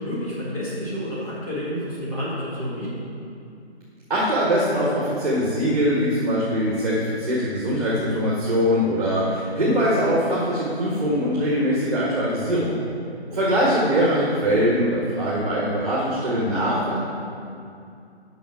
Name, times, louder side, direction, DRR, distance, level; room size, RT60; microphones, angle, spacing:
voice 1, 0.0-3.1 13.3-13.7, equal, 30° left, -10 dB, 1.8 m, -30 dB
voice 2, 4.1-12.7 13.3-17.0, equal, 35° right, -7 dB, 1.6 m, -22 dB
7.1 x 6.0 x 5.8 m, 2.5 s
hypercardioid pair, 175°, 33 cm